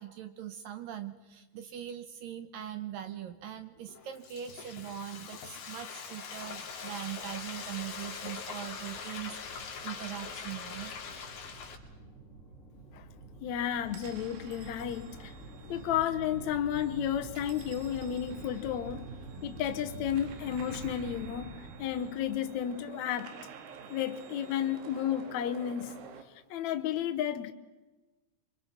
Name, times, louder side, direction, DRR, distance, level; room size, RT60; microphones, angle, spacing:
voice 1, 0.0-10.9, right 10 dB, 70° right, 2.4 m, -41 dB
Frying (food), 3.9-11.8, left 6 dB, 65° left, 4.5 m, -42 dB
sound 1, 6.4-23.3, right 3 dB, 20° left, 3.2 m, -48 dB
voice 2, 13.4-15.3 15.7-19.1 19.4-23.3 23.9-25.9 26.5-27.5, left 10 dB, 85° left, 1.6 m, -32 dB
sound 2, 13.8-26.2, right 6 dB, 85° right, 4.0 m, -51 dB
26.0 x 25.0 x 5.9 m
omnidirectional pair, 4.7 m